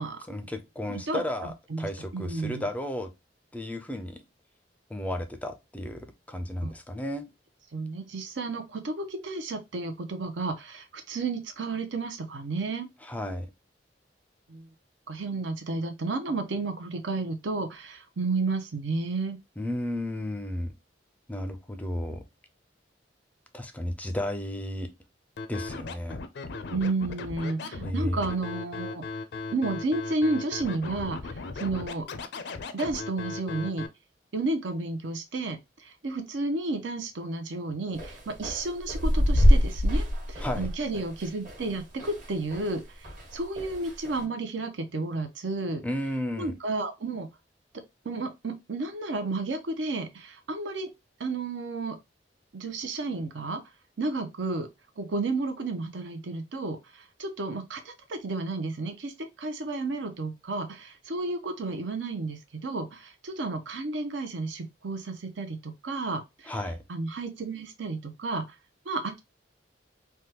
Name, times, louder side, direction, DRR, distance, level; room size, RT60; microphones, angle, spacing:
voice 1, 0.3-3.1 3.5-4.2 4.9-7.2 13.0-13.5 19.6-20.7 21.3-22.2 23.5-24.9 25.5-26.2 27.8-28.2 40.4-40.7 45.8-46.5 66.5-66.8, left 1 dB, 10° left, 0.4 m, -33 dB
voice 2, 0.9-2.6 6.6-6.7 7.7-12.9 14.5-14.7 15.1-19.4 26.7-29.1 29.5-32.1 32.7-33.9 34.3-42.8 43.3-45.8 46.4-47.3 48.0-50.9 51.2-52.0 52.5-53.6 54.0-54.7 55.0-56.8 57.2-66.6 66.9-68.5 68.9-69.2, right 3 dB, 80° right, 0.6 m, -32 dB
Scratching (performance technique), 25.4-33.9, left 3 dB, 65° left, 0.4 m, -37 dB
sound 1, 38.0-42.8 43.0-44.2, equal, 45° right, 1.1 m, -25 dB
3.4 x 2.2 x 2.8 m
head